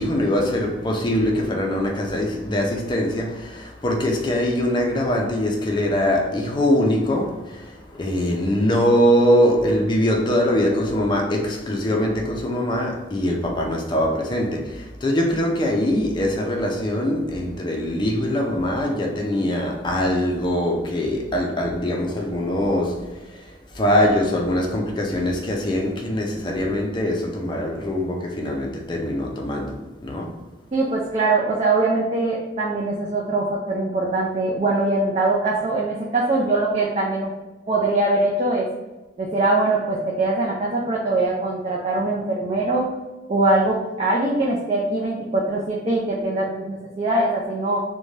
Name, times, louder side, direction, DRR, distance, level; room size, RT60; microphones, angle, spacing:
voice 1, 0.0-30.4, equal, 25° left, 0.4 m, -22 dB
voice 2, 30.7-37.3 37.7-38.7 39.2-42.9 43.3-47.8, right 2 dB, 35° right, 0.4 m, -22 dB
2.5 x 2.2 x 3.1 m
head